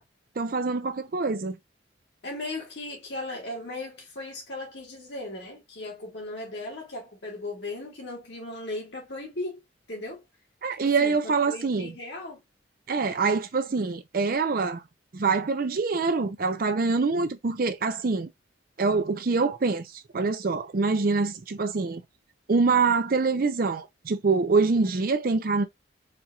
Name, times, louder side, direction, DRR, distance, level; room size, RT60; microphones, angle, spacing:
voice 1, 0.4-1.6 10.6-11.9 12.9-14.8 15.1-18.3 18.8-22.0 22.5-25.6, right 4 dB, 50° right, 0.5 m, -25 dB
voice 2, 2.2-9.6 9.9-10.2 10.8-12.4 24.8-25.0, left 2 dB, 65° left, 1.8 m, -37 dB
4.3 x 2.7 x 2.3 m
head